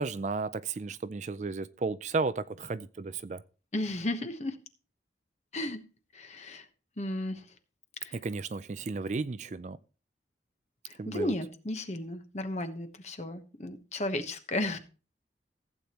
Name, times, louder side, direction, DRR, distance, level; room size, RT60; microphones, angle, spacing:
voice 1, 0.0-3.4 8.1-9.8 11.0-11.3, right 4 dB, 40° right, 0.4 m, -33 dB
voice 2, 3.7-4.6 5.5-5.8 6.1-6.7 7.0-7.5 8.0-8.2 10.8-14.8, left 1 dB, 40° left, 1.1 m, -34 dB
15.0 x 8.6 x 3.0 m
head